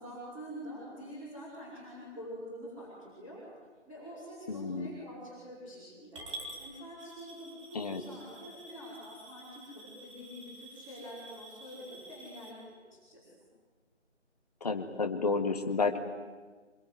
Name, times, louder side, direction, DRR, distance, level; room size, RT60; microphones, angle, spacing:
voice 1, 0.0-3.4 3.9-6.2 6.6-12.8 13.1-13.2, equal, 10° right, -10 dB, 5.6 m, -46 dB
voice 2, 4.5-5.0 7.7-8.0 14.6-16.0, left 4 dB, 35° left, 5 dB, 1.9 m, -31 dB
Coin (dropping) / Glass, 6.1-12.5, right 1 dB, 25° right, 4.3 m, -49 dB
25.5 x 24.0 x 9.5 m, 1.4 s
figure-of-eight pair, 170°, 36 cm